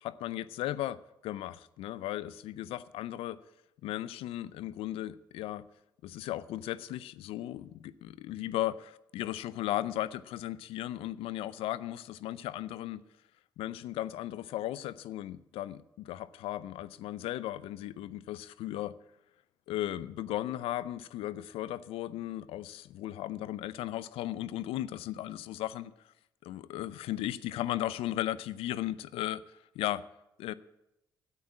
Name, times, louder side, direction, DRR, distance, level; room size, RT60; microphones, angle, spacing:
voice 1, 0.0-3.4 3.8-5.7 6.0-13.0 13.6-18.9 19.7-25.9 26.4-29.4 29.8-30.0 30.4-30.5, left 14 dB, 75° left, 17 dB, 0.5 m, -36 dB
9.6 x 8.6 x 9.6 m, 0.88 s
hypercardioid pair, 50°, 10 cm